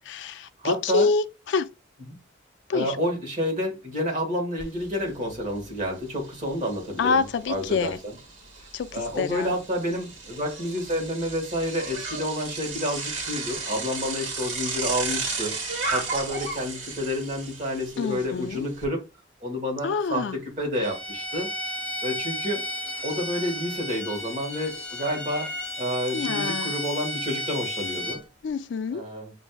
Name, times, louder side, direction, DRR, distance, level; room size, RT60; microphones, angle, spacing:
voice 1, 0.1-1.7 2.7-3.0 7.0-8.0 8.7-9.5 18.0-18.6 19.8-20.4 26.1-26.7 28.4-29.0, left 4 dB, 65° left, 0.3 m, -26 dB
voice 2, 0.6-1.1 2.1-2.2 2.7-8.1 8.6-19.0 19.4-21.5 22.0-22.6 23.0-25.5 25.8-28.2 28.9-29.3, equal, 40° right, 1.4 m, -29 dB
Bicycle, 4.6-4.7 5.1-18.8, right 4 dB, 80° right, 1.4 m, -34 dB
Bowed string instrument, 20.8-28.2, left 1 dB, 5° left, 0.5 m, -33 dB
6.1 x 2.6 x 2.3 m
head